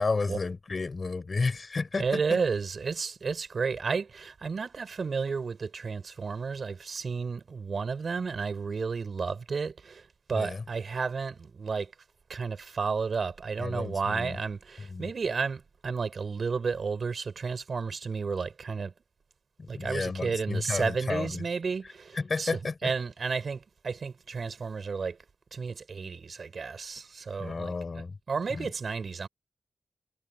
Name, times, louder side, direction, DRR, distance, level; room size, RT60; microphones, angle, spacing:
voice 1, 0.0-2.4 10.3-10.6 13.6-14.4 14.8-15.1 19.6-21.4 22.2-22.9 27.4-28.2 28.5-28.7, left 4 dB, 40° left, 6.1 m, -32 dB
voice 2, 2.0-11.9 12.3-18.9 19.7-25.2 25.5-27.7 28.3-29.3, right 5 dB, 55° right, 7.1 m, -32 dB
wide cardioid pair, 130°, 0 cm